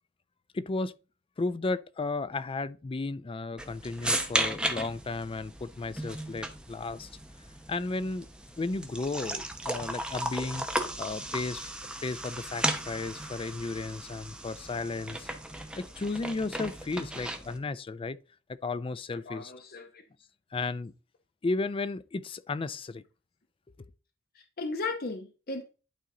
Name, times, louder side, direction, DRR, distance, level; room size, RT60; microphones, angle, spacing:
voice 1, 0.5-0.9 1.4-7.1 7.7-8.3 8.6-10.7 11.0-11.7 12.0-15.3 15.8-18.2 18.5-19.5 20.5-20.9 21.4-23.0 23.8-23.9, left 3 dB, 25° left, 0.4 m, -34 dB
sound 1, 3.6-17.6, right 1 dB, 5° right, 0.8 m, -35 dB
voice 2, 19.2-20.0 24.6-25.6, left 3 dB, 50° left, 0.9 m, -35 dB
11.5 x 4.0 x 3.8 m
head